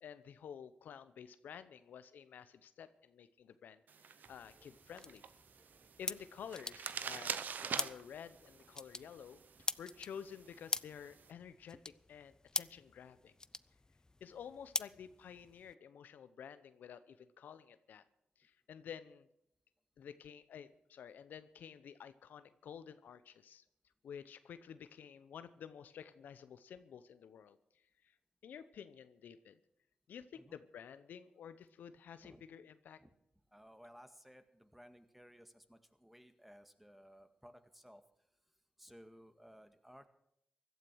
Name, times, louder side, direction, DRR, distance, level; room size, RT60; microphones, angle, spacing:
voice 1, 0.0-5.2 6.0-9.4 9.8-13.3 14.2-18.0 18.4-19.3 20.0-23.6 24.0-27.6 28.4-29.6 30.1-33.0, left 8 dB, 85° left, 12 dB, 0.8 m, -51 dB
sound 1, 3.9-11.3, right 6 dB, 75° right, 0.8 m, -46 dB
sound 2, 4.2-15.7, left 2 dB, 25° left, 0.5 m, -45 dB
voice 2, 33.5-38.0 38.8-40.1, equal, 5° right, 8 dB, 1.8 m, -59 dB
16.5 x 12.0 x 6.3 m, 0.76 s
cardioid pair, 50°, 3 cm